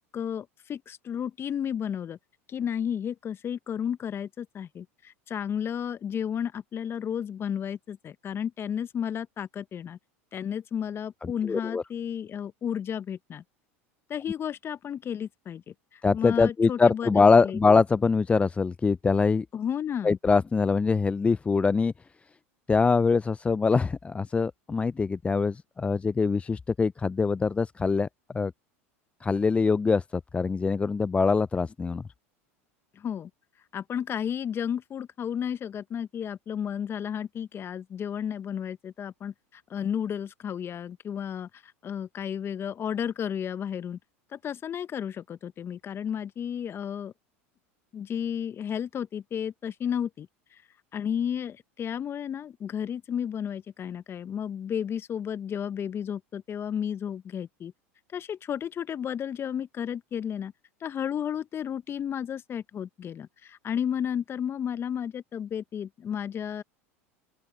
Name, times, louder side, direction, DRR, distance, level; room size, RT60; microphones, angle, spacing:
voice 1, 0.0-2.2 2.5-10.0 10.3-13.4 14.1-17.6 19.5-20.2 32.9-33.3 33.7-44.0 44.3-47.1 47.9-50.6 50.9-57.7 58.1-60.5 60.8-66.6, left 8 dB, 35° left, 1.1 m, -33 dB
voice 2, 11.2-11.8 16.0-19.5 20.0-21.9 22.7-28.1 28.3-28.5 29.2-32.0, left 4 dB, 15° left, 0.5 m, -23 dB
open air
hypercardioid pair, 85°, 7 cm